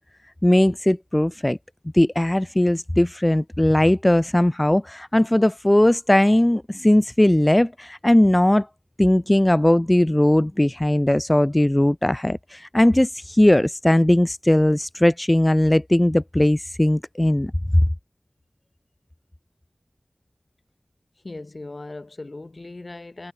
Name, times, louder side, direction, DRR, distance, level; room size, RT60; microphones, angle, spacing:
voice 1, 0.4-1.6 1.9-8.7 9.0-17.5, left 1 dB, 20° left, 0.4 m, -19 dB
voice 2, 21.2-23.3, left 2 dB, 60° left, 1.5 m, -38 dB
wide cardioid pair, 50°, 0 cm